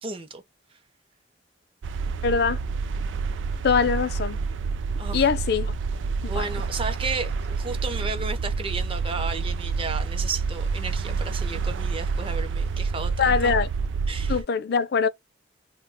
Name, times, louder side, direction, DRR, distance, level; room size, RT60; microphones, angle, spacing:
voice 1, 0.0-0.4 0.7-0.8 5.0-5.3 6.3-13.5 14.1-14.4, right 4 dB, 30° right, 0.5 m, -33 dB
sound 1, 1.8-14.4, right 4 dB, 85° right, 0.3 m, -28 dB
voice 2, 2.2-2.6 3.6-4.4 5.1-5.7 6.2-6.4 13.2-13.7 14.3-15.1, left 5 dB, 60° left, 0.4 m, -23 dB
2.7 x 2.2 x 3.4 m
head